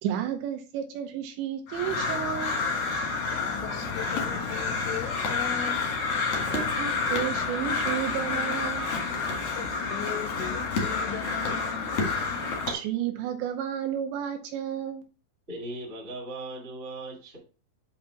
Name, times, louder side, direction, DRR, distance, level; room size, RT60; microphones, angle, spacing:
voice 1, 0.0-2.5 6.5-8.9 12.7-15.0, right 10 dB, 80° right, 5 dB, 2.7 m, -32 dB
Crow, 1.7-12.7, left 4 dB, 70° left, 1.5 m, -29 dB
voice 2, 3.3-5.8 9.6-11.9, left 8 dB, 85° left, 8 dB, 3.3 m, -38 dB
voice 3, 15.5-17.4, right 2 dB, 35° right, -2 dB, 1.0 m, -38 dB
8.5 x 2.9 x 5.6 m, 0.35 s
omnidirectional pair, 5.6 m